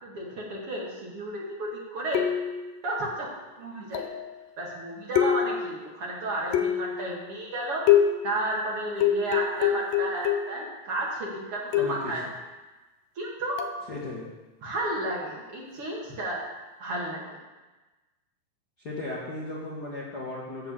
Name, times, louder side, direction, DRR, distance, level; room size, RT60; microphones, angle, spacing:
voice 1, 0.0-2.3 2.8-3.3 3.6-4.1 4.6-7.8 8.2-12.2 13.2-13.6 14.6-16.4 16.8-17.4, right 1 dB, 50° right, -3 dB, 2.3 m, -32 dB
sound 1, 2.1-2.7 3.9-4.3 5.2-5.8 6.5-7.0 7.9-8.4 9.0-10.7 11.7-12.2 13.6-13.8, left 9 dB, 85° left, 2.4 m, -25 dB
voice 2, 11.8-12.1 13.9-14.3 18.8-20.7, left 2 dB, 45° left, -5 dB, 1.3 m, -36 dB
13.5 x 4.7 x 7.4 m, 1.2 s
omnidirectional pair, 3.9 m